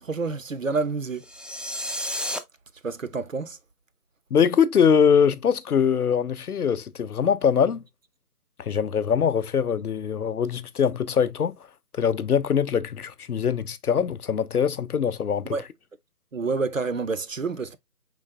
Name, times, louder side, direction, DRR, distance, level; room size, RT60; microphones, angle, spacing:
voice 1, 0.0-1.2 2.8-3.6 15.5-15.6 16.3-17.8, right 4 dB, 55° right, 0.5 m, -28 dB
sound 1, 1.2-2.4, equal, ahead, 0.3 m, -31 dB
voice 2, 4.3-7.8 8.6-11.5 11.9-15.5, left 7 dB, 65° left, 0.6 m, -22 dB
4.9 x 3.8 x 2.7 m
figure-of-eight pair, 170°, 48 cm